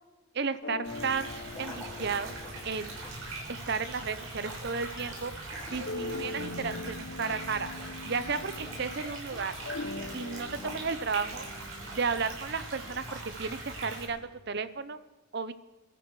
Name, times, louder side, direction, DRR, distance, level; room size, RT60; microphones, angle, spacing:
voice 1, 0.3-2.3 2.6-2.9 3.5-5.3 5.7-7.7 8.1-9.5 10.1-11.4 11.9-15.0 15.3-15.5, right 5 dB, 50° right, 13 dB, 0.7 m, -33 dB
sound 1, 0.6-3.8 4.7-9.1 9.4-13.6, left 3 dB, 60° left, 0.8 m, -43 dB
sound 2, 0.8-14.1, right 2 dB, 80° right, 5.2 m, -41 dB
sound 3, 1.4-8.1 8.4-8.9 9.2-10.9 11.2-13.4, left 1 dB, 15° left, 4.3 m, -50 dB
21.5 x 13.0 x 4.8 m, 1.1 s
head